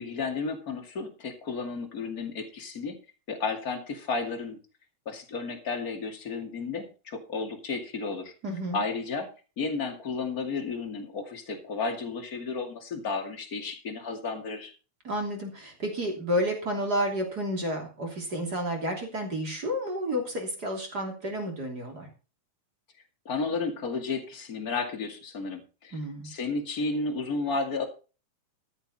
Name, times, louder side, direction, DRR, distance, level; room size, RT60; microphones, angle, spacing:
voice 1, 0.0-2.9 3.3-4.6 5.1-8.3 8.7-9.3 9.6-14.7 23.3-27.9, left 4 dB, 30° left, 3 dB, 1.9 m, -32 dB
voice 2, 8.4-8.8 15.0-22.1 25.9-26.3, equal, 25° right, 2 dB, 3.2 m, -31 dB
14.0 x 9.4 x 4.2 m, 0.34 s
omnidirectional pair, 4.5 m